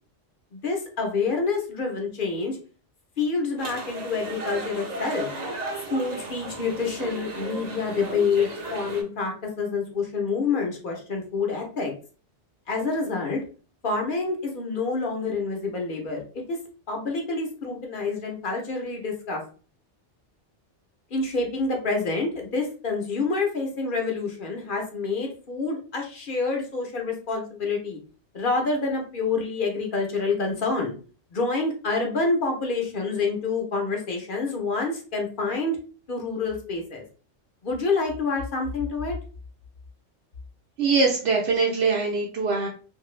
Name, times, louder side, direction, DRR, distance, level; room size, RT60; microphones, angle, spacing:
voice 1, 0.5-2.6 3.2-5.3 5.9-11.9 12.7-13.4 13.8-16.6 16.9-19.4 21.1-28.0 28.3-30.9 31.3-35.8 36.1-37.0 37.6-39.1, left 4 dB, 50° left, 1 dB, 0.8 m, -27 dB
sound 1, 3.6-9.0, right 2 dB, 45° right, 0.7 m, -35 dB
voice 2, 40.8-42.7, right 4 dB, 65° right, -2 dB, 0.9 m, -22 dB
2.8 x 2.6 x 3.1 m, 0.39 s
omnidirectional pair, 1.2 m